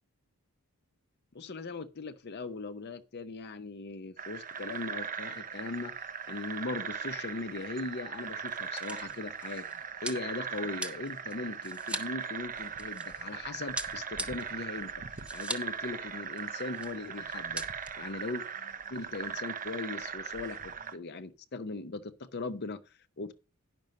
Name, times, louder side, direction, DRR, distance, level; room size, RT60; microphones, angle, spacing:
voice 1, 1.3-9.7 10.0-15.0 15.3-17.6 18.0-18.4 18.9-23.3, left 3 dB, 50° left, 0.7 m, -39 dB
sound 1, 4.2-21.0, right 6 dB, 40° right, 0.8 m, -39 dB
sound 2, 6.8-7.0 7.3-7.4 8.2-13.3 13.8-15.8 16.1-16.2 16.4-16.9 17.3-17.9, right 1 dB, 5° right, 0.9 m, -41 dB
10.5 x 6.1 x 5.2 m
head